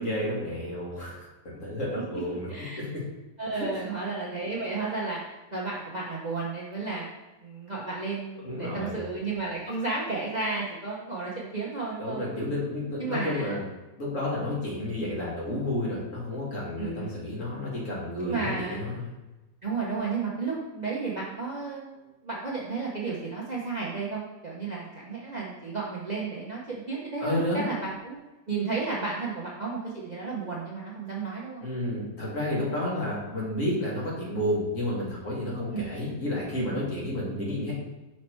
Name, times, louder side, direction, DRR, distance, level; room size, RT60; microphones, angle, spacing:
voice 1, 0.0-2.5 2.8-3.0 3.5-3.8 8.4-9.0 12.0-13.6 14.0-19.1 27.2-27.7 31.6-37.7, left 1 dB, 55° left, -5 dB, 2.3 m, -31 dB
voice 2, 2.3-2.8 3.4-5.2 5.5-7.1 7.4-12.2 13.0-13.5 16.8-17.2 18.2-18.8 19.6-22.0 22.2-28.2 28.5-31.6 35.7-35.9, right 4 dB, 35° right, -4 dB, 0.8 m, -33 dB
5.8 x 4.3 x 4.4 m, 1.1 s
omnidirectional pair, 1.7 m